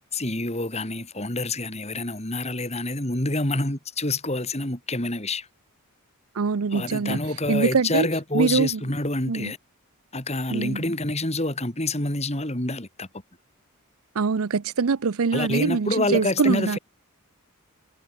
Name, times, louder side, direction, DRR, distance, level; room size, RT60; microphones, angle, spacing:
voice 1, 0.1-5.5 6.7-9.6 10.1-13.1 15.3-16.8, left 2 dB, 30° left, 3.2 m, -27 dB
voice 2, 6.4-7.2 7.5-8.1 8.3-8.8 9.3-9.5 10.5-10.8 14.1-16.8, right 5 dB, 80° right, 0.6 m, -23 dB
head